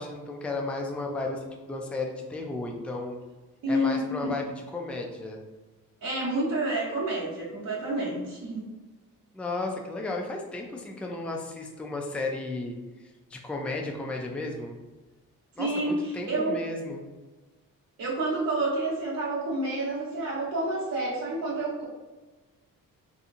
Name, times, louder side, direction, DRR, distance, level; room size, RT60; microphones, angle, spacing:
voice 1, 0.0-3.2 3.7-5.4 9.3-14.8 15.6-17.0, left 2 dB, 5° left, 1 dB, 0.4 m, -34 dB
voice 2, 3.6-4.1 6.0-8.7 15.6-16.6 18.0-21.8, right 1 dB, 80° right, -7 dB, 1.0 m, -29 dB
3.7 x 2.8 x 2.5 m, 1.2 s
cardioid pair, 100°, 34 cm